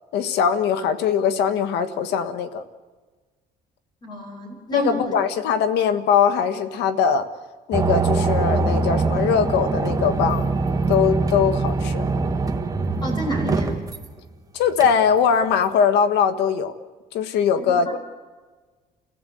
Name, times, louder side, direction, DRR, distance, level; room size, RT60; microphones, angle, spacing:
voice 1, 0.1-2.6 4.7-7.3 7.7-10.5 10.9-12.0 14.5-16.7 17.1-18.0, left 7 dB, 85° left, 10 dB, 1.5 m, -21 dB
voice 2, 4.0-5.1 13.0-13.7 17.7-17.8, equal, 25° left, 1 dB, 5.9 m, -29 dB
sound 1, 7.7-14.1 14.8-14.9, right 3 dB, 20° right, 1.7 m, -23 dB
29.5 x 16.0 x 7.8 m, 1.4 s
cardioid pair, 110°, 17 cm